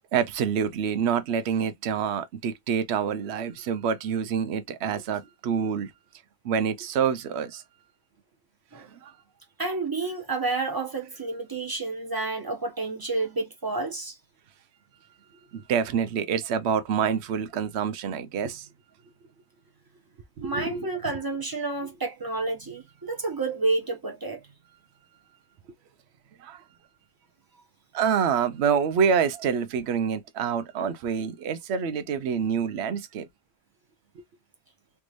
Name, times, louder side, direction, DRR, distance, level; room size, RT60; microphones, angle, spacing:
voice 1, 0.1-5.9 6.4-7.6 9.0-9.1 15.5-18.7 20.4-20.9 26.4-26.6 27.9-33.3, right 7 dB, 60° right, 0.7 m, -27 dB
voice 2, 9.6-14.2 20.4-24.4, right 3 dB, 15° right, 0.9 m, -30 dB
3.4 x 3.1 x 2.5 m
omnidirectional pair, 1.6 m